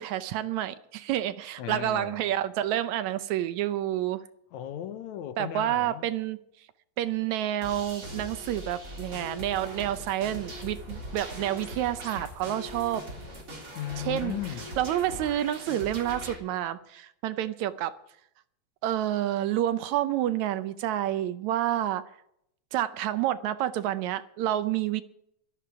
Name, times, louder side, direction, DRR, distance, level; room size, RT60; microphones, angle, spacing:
voice 1, 0.0-4.2 5.4-6.4 7.0-13.0 14.0-14.4 14.8-17.9 18.8-22.0 22.7-25.0, right 12 dB, 75° right, 2.0 m, -29 dB
voice 2, 1.6-2.2 4.5-6.1 13.8-14.7, left 12 dB, 75° left, 2.1 m, -36 dB
sound 1, 7.6-16.4, equal, 25° right, 3.6 m, -41 dB
17.0 x 13.0 x 4.8 m
omnidirectional pair, 3.5 m